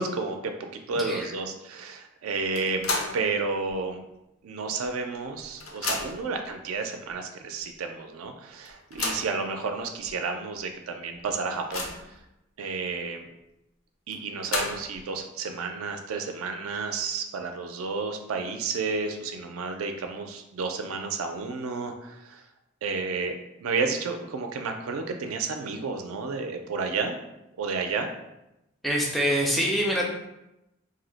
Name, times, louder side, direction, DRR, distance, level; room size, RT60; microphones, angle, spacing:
voice 1, 0.0-4.0 4.4-12.2 12.6-13.3 14.1-22.4 22.8-27.2 27.6-28.1, right 4 dB, 75° right, 5 dB, 0.4 m, -31 dB
voice 2, 0.9-1.3 28.8-30.1, equal, ahead, -2 dB, 0.4 m, -25 dB
sound 1, 2.5-3.3 3.7-3.8 4.8-4.9 5.2-6.3 7.1-7.2 7.6-7.7 8.6-9.4 10.1-10.2 10.5-10.6 11.1-12.2 14.1-15.0, left 3 dB, 75° left, 0.5 m, -32 dB
2.7 x 2.0 x 3.8 m, 0.90 s
head